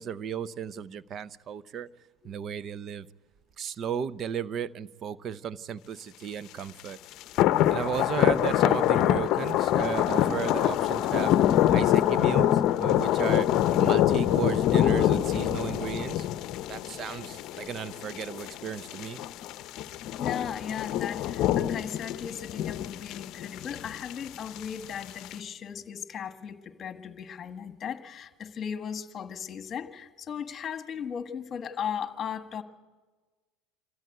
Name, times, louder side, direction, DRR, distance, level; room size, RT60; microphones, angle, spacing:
voice 1, 0.0-1.9 2.2-3.1 3.6-7.0 7.7-11.4 11.7-13.5 13.8-16.3 16.7-19.2, right 8 dB, 45° right, 0.7 m, -34 dB
sound 1, 6.8-6.9 7.2-25.3, left 12 dB, 55° left, 0.7 m, -25 dB
voice 2, 20.2-32.6, left 8 dB, 35° left, 1.5 m, -37 dB
25.5 x 13.5 x 9.2 m
supercardioid pair, 110°, 0 cm